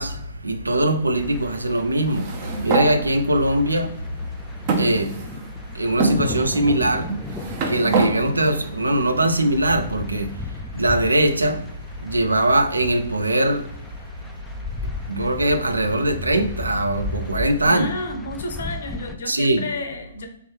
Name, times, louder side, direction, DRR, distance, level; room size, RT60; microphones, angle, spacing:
voice 1, 0.0-3.9 4.8-5.1 5.7-7.1 7.7-10.3 10.7-11.6 12.0-13.7 15.1-17.9 19.3-19.6, right 1 dB, 80° right, 0.4 m, -21 dB
sound 1, 1.2-19.2, left 2 dB, 10° left, 0.3 m, -35 dB
sound 2, 2.1-2.9 3.7-3.8 4.7-5.5 6.0-6.2 7.1-8.1, right 3 dB, 40° right, 0.7 m, -23 dB
voice 2, 17.7-20.3, left 2 dB, 60° left, 0.7 m, -31 dB
3.2 x 3.1 x 3.2 m
figure-of-eight pair, 120°, 0 cm